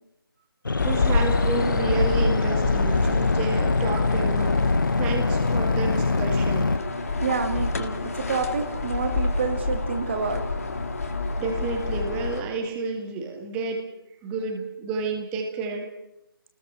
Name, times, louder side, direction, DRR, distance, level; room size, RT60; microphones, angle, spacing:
sound 1, 0.6-6.8, left 3 dB, 60° left, 1.0 m, -24 dB
sound 2, 0.8-12.4, left 3 dB, 40° left, 2.2 m, -27 dB
voice 1, 0.8-4.5 5.0-6.7 11.4-13.8 14.2-15.9, right 4 dB, 10° right, 3 dB, 2.1 m, -30 dB
voice 2, 7.2-10.4, right 5 dB, 30° right, 6 dB, 1.9 m, -28 dB
29.5 x 20.0 x 6.3 m, 0.85 s
figure-of-eight pair, 160°, 12 cm